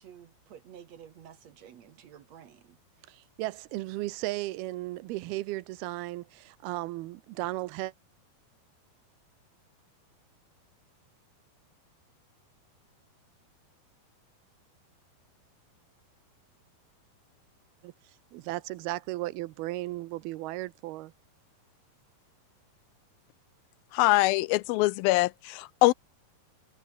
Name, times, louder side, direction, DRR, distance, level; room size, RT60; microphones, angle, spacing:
voice 1, 0.0-2.8, right 9 dB, 55° right, 2.1 m, -51 dB
voice 2, 3.1-7.9 17.8-17.9 18.3-21.1, right 18 dB, 90° right, 2.8 m, -35 dB
voice 3, 23.9-25.9, left 20 dB, 80° left, 2.3 m, -23 dB
omnidirectional pair, 4.4 m